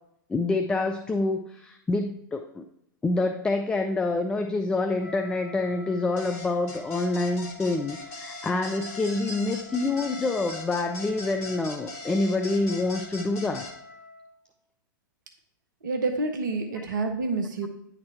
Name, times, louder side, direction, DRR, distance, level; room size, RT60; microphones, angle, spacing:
voice 1, 0.3-2.7 3.0-13.7 16.8-16.9, left 2 dB, 10° left, 6 dB, 0.4 m, -27 dB
Wind instrument woodwind instrument, 4.9-14.3, left 3 dB, 65° left, 1.6 m, -47 dB
sound 1, 6.2-13.7, left 2 dB, 50° left, 1.5 m, -40 dB
voice 2, 15.8-17.7, right 3 dB, 65° right, 5 dB, 0.9 m, -28 dB
9.6 x 4.0 x 4.2 m, 0.77 s
figure-of-eight pair, 100°, 11 cm